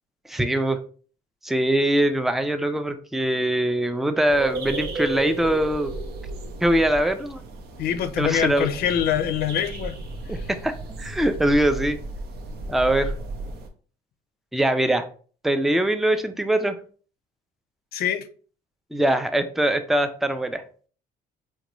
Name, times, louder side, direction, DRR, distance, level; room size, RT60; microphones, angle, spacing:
voice 1, 0.3-0.8 1.4-5.9 6.6-7.4 8.2-8.7 10.3-10.7 11.0-12.0 12.7-13.1 14.5-15.0 15.4-16.8 18.9-20.6, right 1 dB, ahead, 0.3 m, -22 dB
sound 1, 4.3-13.7, right 2 dB, 70° right, 0.6 m, -34 dB
voice 2, 7.8-10.0 10.3-10.5 17.9-18.3, left 9 dB, 65° left, 0.4 m, -24 dB
3.7 x 2.2 x 3.0 m
cardioid pair, 110°, 17 cm